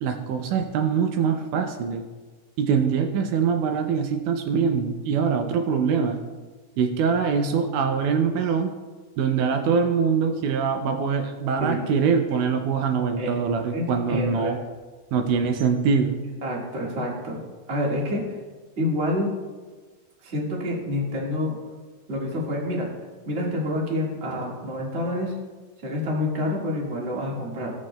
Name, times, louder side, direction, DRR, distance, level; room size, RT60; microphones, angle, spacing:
voice 1, 0.0-2.1 2.6-6.2 6.8-8.7 9.2-14.6 15.1-16.2, right 6 dB, 90° right, 5 dB, 1.7 m, -23 dB
voice 2, 13.7-14.6 16.4-17.4 17.7-18.2 18.8-19.3 20.2-21.6 22.1-22.9 23.3-25.3 25.8-27.7, left 1 dB, 60° right, -3 dB, 0.6 m, -27 dB
18.0 x 6.3 x 2.2 m, 1.4 s
omnidirectional pair, 4.2 m